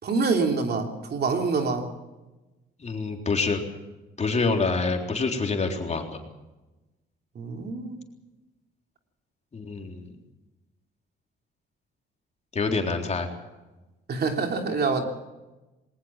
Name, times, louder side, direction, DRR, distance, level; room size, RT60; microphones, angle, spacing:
voice 1, 0.0-1.9 4.2-4.3 7.3-8.0 14.1-15.0, right 4 dB, 55° right, 4 dB, 3.2 m, -26 dB
voice 2, 2.8-3.6 4.2-6.2 9.5-10.1 12.5-13.3, left 4 dB, 35° left, 3 dB, 3.8 m, -26 dB
20.5 x 19.5 x 7.4 m, 1.1 s
cardioid pair, 90°, 20 cm